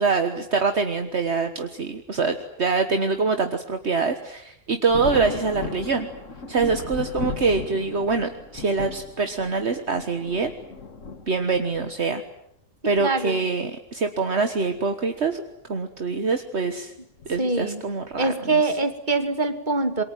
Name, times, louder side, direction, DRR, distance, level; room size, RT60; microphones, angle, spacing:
voice 1, 0.0-6.1 6.5-10.5 11.3-12.2 12.8-15.4 15.7-16.9 17.3-18.6, right 4 dB, 60° right, 7 dB, 1.7 m, -24 dB
Thunder, 4.9-11.9 13.0-13.1 14.5-14.8 15.1-15.2 17.2-17.4 18.1-18.5, left 4 dB, 80° left, 2.1 m, -36 dB
voice 2, 13.0-13.4 17.4-17.8 18.2-20.0, right 3 dB, 35° right, 8 dB, 2.5 m, -24 dB
27.0 x 23.5 x 9.1 m, 0.73 s
omnidirectional pair, 1.3 m